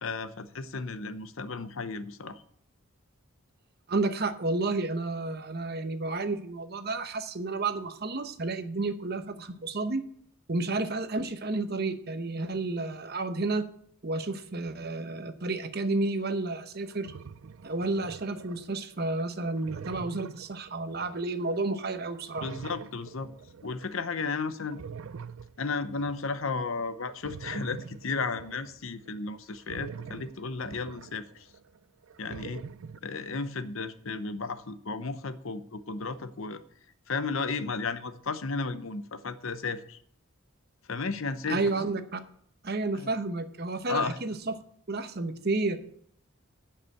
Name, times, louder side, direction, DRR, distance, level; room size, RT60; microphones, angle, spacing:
voice 1, 0.0-2.4 22.4-23.3 23.6-24.8 25.6-31.5 32.2-32.6 33.0-36.6 37.1-40.0 40.9-41.6 42.9-43.1 43.9-44.2, left 4 dB, 65° left, 11 dB, 0.8 m, -34 dB
voice 2, 3.9-10.0 10.5-13.7 14.0-17.1 17.6-22.5 41.5-42.2 42.6-44.5 44.9-45.8, right 3 dB, 45° right, 9 dB, 0.9 m, -31 dB
sound 1, 16.2-16.3 16.7-18.7 19.2-21.9 22.1-23.9 24.6-26.4 27.1-31.8 32.0-33.0, right 6 dB, 70° right, 0.4 m, -45 dB
11.0 x 5.7 x 8.7 m, 0.63 s
head